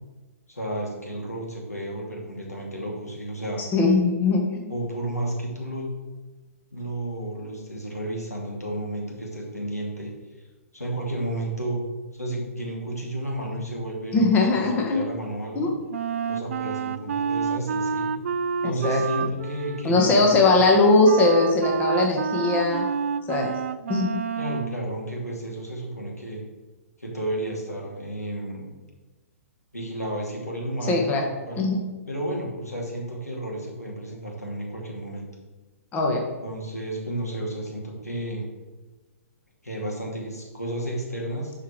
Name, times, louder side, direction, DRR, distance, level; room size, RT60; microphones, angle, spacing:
voice 1, 0.5-3.6 4.7-5.9 6.7-10.1 10.7-11.8 12.1-14.6 14.9-15.7 16.3-18.1 18.6-20.3 24.4-26.4 27.0-28.7 29.7-31.1 31.4-31.6 32.1-35.3 36.4-38.5 39.6-41.5, right 1 dB, 90° left, -2 dB, 2.6 m, -32 dB
voice 2, 3.6-4.5 14.1-15.1 15.5-15.7 18.6-19.0 19.8-22.9 23.3-23.5 23.9-24.2 30.9-31.2 31.6-31.8 35.9-36.2, left 3 dB, 20° left, 1 dB, 1.4 m, -20 dB
Wind instrument woodwind instrument, 15.9-24.8, right 6 dB, 55° right, 0.4 m, -29 dB
11.0 x 4.9 x 4.6 m, 1.2 s
figure-of-eight pair, 120°, 8 cm